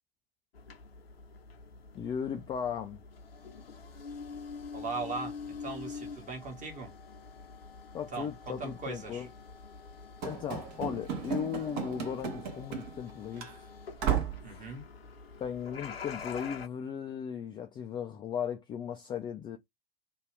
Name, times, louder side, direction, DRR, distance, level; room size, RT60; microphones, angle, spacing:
sound 1, 0.5-16.7, left 5 dB, 80° left, 0.7 m, -46 dB
voice 1, 1.9-3.0 7.9-9.3 10.3-13.7 14.4-14.7 15.4-19.6, left 8 dB, 15° left, 0.3 m, -37 dB
voice 2, 4.7-6.9 8.1-9.3 14.4-14.9, right 4 dB, 25° right, 1.2 m, -39 dB
Run / Slam, 10.2-13.1 13.4-13.5 14.0-14.5, right 8 dB, 50° right, 1.0 m, -34 dB
2.7 x 2.4 x 3.2 m
figure-of-eight pair, 80°, 30 cm